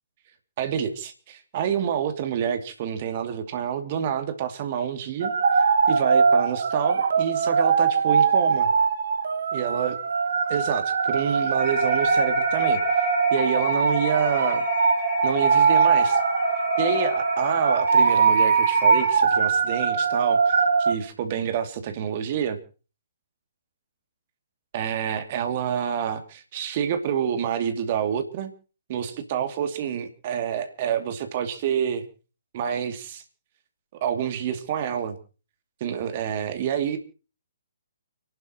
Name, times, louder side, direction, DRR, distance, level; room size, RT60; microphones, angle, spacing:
voice 1, 0.6-8.7 9.5-10.0 10.5-14.6 15.2-16.2 16.8-22.6 24.7-28.5 28.9-32.0 32.5-33.2 34.0-35.2 35.8-37.0, right 8 dB, 40° right, 7 dB, 2.6 m, -28 dB
sound 1, 5.2-20.9, right 5 dB, 60° right, 1.7 m, -22 dB
sound 2, 11.6-19.1, right 1 dB, ahead, 6.6 m, -27 dB
29.5 x 12.0 x 3.0 m, 0.35 s
figure-of-eight pair, 130°, 0 cm